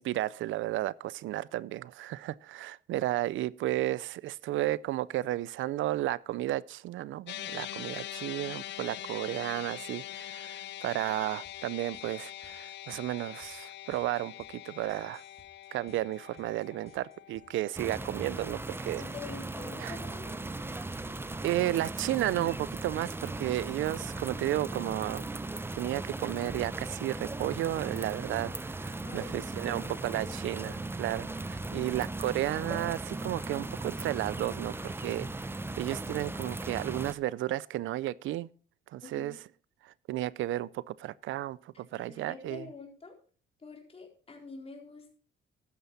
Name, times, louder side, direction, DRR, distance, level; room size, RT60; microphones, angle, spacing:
voice 1, 0.0-15.2 15.7-19.1 19.8-20.0 21.4-25.2 25.7-35.3 35.8-38.5 38.9-39.4 39.8-42.6, right 15 dB, 75° right, 0.5 m, -33 dB
sound 1, 7.3-19.7, left 13 dB, 65° left, 0.4 m, -44 dB
sound 2, 11.4-19.4 20.5-22.5, right 3 dB, 30° right, 5.2 m, -60 dB
sound 3, 17.7-37.1, right 2 dB, 10° right, 0.7 m, -38 dB
voice 2, 19.0-20.3 29.0-29.4 29.7-30.7 31.7-32.2 39.0-39.4 41.9-43.2 43.6-45.1, left 4 dB, 30° left, 4.0 m, -46 dB
12.5 x 9.3 x 4.1 m
cardioid pair, 90°, 20 cm